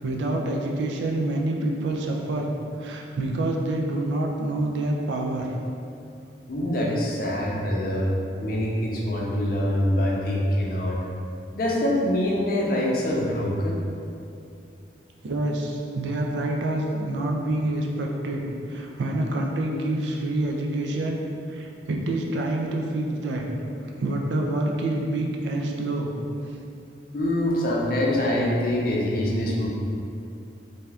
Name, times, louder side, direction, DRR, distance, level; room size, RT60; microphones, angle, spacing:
voice 1, 0.0-2.5 2.8-5.5 15.2-21.2 21.5-23.4 23.8-26.1, right 1 dB, 85° right, 0 dB, 0.4 m, -27 dB
voice 2, 6.5-8.1 8.4-11.0 11.5-13.8 27.1-29.7, left 1 dB, 55° left, -3 dB, 0.5 m, -24 dB
2.7 x 2.3 x 3.3 m, 2.6 s
head